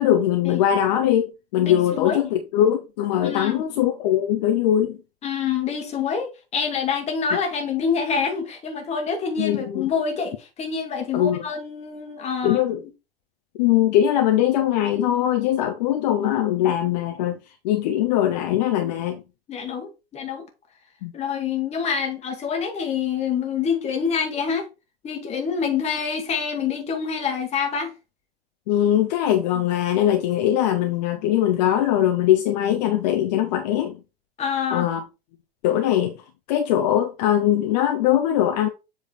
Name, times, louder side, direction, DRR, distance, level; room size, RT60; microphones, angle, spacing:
voice 1, 0.0-5.0 9.4-9.9 11.1-11.4 12.4-12.8 13.6-17.4 17.6-19.2 21.0-21.1 28.7-34.0 34.7-35.0 35.6-36.2 36.5-38.7, left 11 dB, 40° left, 0.8 m, -21 dB
voice 2, 1.6-2.2 3.2-3.6 5.2-12.6 19.5-20.4 21.1-24.7 25.0-27.9 34.4-34.9, left 6 dB, 20° left, 1.4 m, -26 dB
7.4 x 3.3 x 4.3 m
figure-of-eight pair, 95°, 31 cm